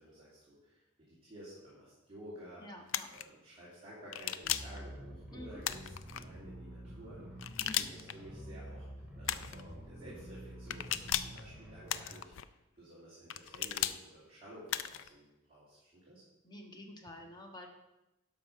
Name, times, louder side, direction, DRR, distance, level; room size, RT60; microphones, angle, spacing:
voice 1, 0.0-2.7 3.1-7.2 7.6-12.3 12.7-16.2, right 1 dB, 30° right, -10 dB, 2.9 m, -53 dB
voice 2, 2.6-3.1 5.3-5.6 7.6-7.9 16.4-17.7, left 1 dB, 20° left, 2 dB, 1.3 m, -48 dB
sound 1, 2.9-3.2 4.1-4.8 5.6-6.2 7.4-8.1 9.2-9.6 10.7-11.4 11.9-12.4 13.3-14.0 14.7-15.1, left 11 dB, 65° left, 0.4 m, -36 dB
sound 2, 4.4-12.0, equal, 5° right, 2.2 m, -48 dB
12.0 x 5.5 x 5.7 m, 0.94 s
head